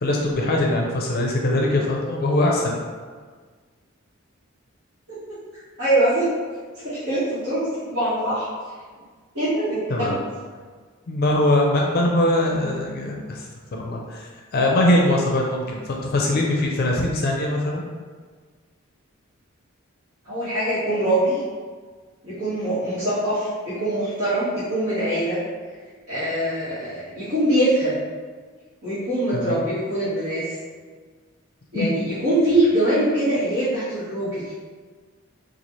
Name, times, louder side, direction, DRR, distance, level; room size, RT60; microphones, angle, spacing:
voice 1, 0.0-2.7 9.9-10.2 11.1-13.5 13.8-17.8 29.3-29.6 31.7-31.9, left 1 dB, 45° left, -1 dB, 0.4 m, -22 dB
voice 2, 5.8-6.3 6.8-8.5 9.3-10.2 20.2-21.4 22.2-25.4 26.1-28.0 28.8-30.5 31.7-34.5, right 1 dB, 65° right, -14 dB, 1.4 m, -23 dB
4.1 x 2.4 x 3.0 m, 1.5 s
head